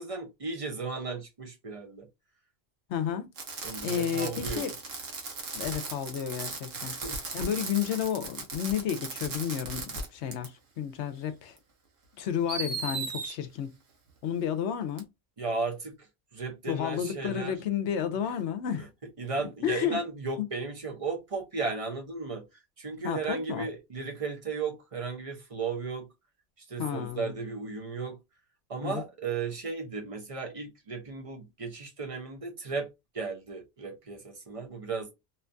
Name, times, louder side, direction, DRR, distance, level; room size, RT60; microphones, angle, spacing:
voice 1, 0.0-2.1 3.6-4.7 6.8-7.2 15.4-16.0 16.3-17.6 19.2-22.5 22.8-26.1 26.6-28.2 28.7-32.9 33.1-35.1, right 4 dB, 40° right, 0.6 m, -35 dB
voice 2, 2.9-3.3 3.8-4.7 5.5-7.0 7.3-11.5 12.2-13.7 14.2-15.1 16.7-18.9 19.6-20.0 20.4-20.5 23.0-23.7 26.8-27.3 28.8-29.0, left 9 dB, 75° left, 0.8 m, -31 dB
Fireworks, 3.4-10.1 10.3-10.5 11.6-11.7 12.5-13.3 15.0-15.1, right 4 dB, 60° right, 0.9 m, -37 dB
2.8 x 2.2 x 2.5 m
omnidirectional pair, 1.2 m